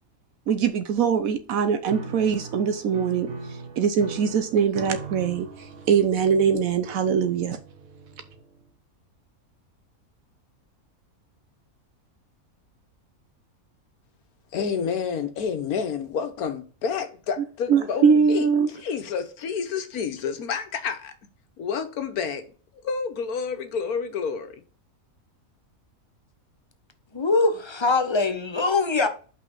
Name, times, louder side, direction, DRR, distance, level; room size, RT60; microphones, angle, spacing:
voice 1, 0.5-3.3 3.8-7.6 17.7-18.7, right 6 dB, 75° right, 1.1 m, -22 dB
Piano, 1.9-8.7, right 4 dB, 55° right, 1.2 m, -40 dB
voice 2, 14.5-18.5 18.7-21.1 21.6-22.4 22.8-24.6, left 6 dB, 90° left, 1.5 m, -29 dB
voice 3, 27.1-29.1, left 3 dB, 25° left, 0.6 m, -22 dB
5.6 x 4.2 x 5.3 m
omnidirectional pair, 1.5 m